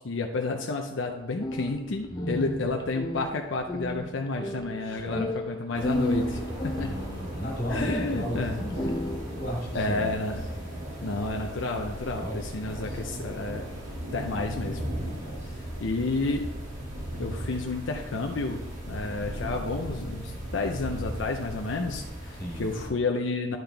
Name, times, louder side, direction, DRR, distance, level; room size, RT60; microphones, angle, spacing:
voice 1, 0.0-7.0 7.7-8.6 9.7-10.4 11.0-13.6 14.1-14.8 15.8-16.5 17.2-23.6, left 3 dB, 75° left, 2 dB, 0.6 m, -31 dB
sound 1, 1.3-7.2 8.0-8.1 8.5-9.2, left 1 dB, 20° left, 0.6 m, -33 dB
voice 2, 2.1-2.6 4.8-5.3 6.8-9.0 9.3-10.2 10.5-10.8 12.1-13.0 15.2-15.6 22.4-22.7, equal, 50° left, -3 dB, 2.5 m, -35 dB
sound 2, 5.7-22.9, equal, 70° right, 2.6 m, -37 dB
10.5 x 5.8 x 3.4 m, 0.97 s
head